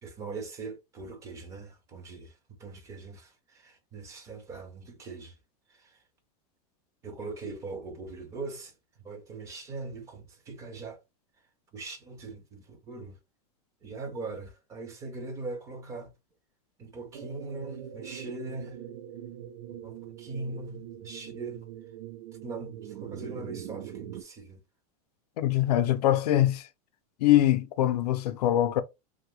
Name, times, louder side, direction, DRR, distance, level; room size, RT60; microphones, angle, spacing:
voice 1, 0.0-5.4 5.7-6.0 7.0-8.7 9.0-11.0 11.7-13.2 13.8-16.1 16.8-18.8 19.7-21.6 22.4-24.6 27.8-28.0, right 3 dB, 15° right, 0.4 m, -41 dB
sound 1, 17.1-24.2, right 10 dB, 75° right, 0.5 m, -42 dB
voice 2, 25.4-26.6 27.2-28.8, left 13 dB, 90° left, 0.5 m, -23 dB
2.6 x 2.2 x 3.0 m
supercardioid pair, 165°, 20 cm